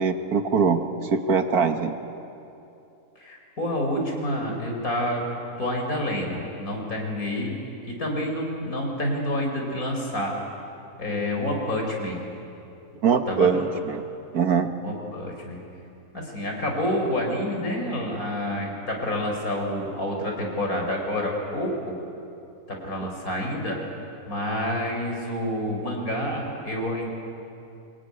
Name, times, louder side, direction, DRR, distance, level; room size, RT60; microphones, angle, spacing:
voice 1, 0.0-1.9 13.0-14.0 14.3-14.7, right 6 dB, 75° right, 6 dB, 1.9 m, -22 dB
voice 2, 3.2-5.2 5.6-7.5 7.9-10.3 11.0-12.2 13.3-13.5 14.8-15.6 16.1-22.0 22.7-23.8 24.3-27.1, left 1 dB, 65° left, 1 dB, 5.1 m, -28 dB
25.0 x 20.5 x 9.9 m, 2.7 s
omnidirectional pair, 1.6 m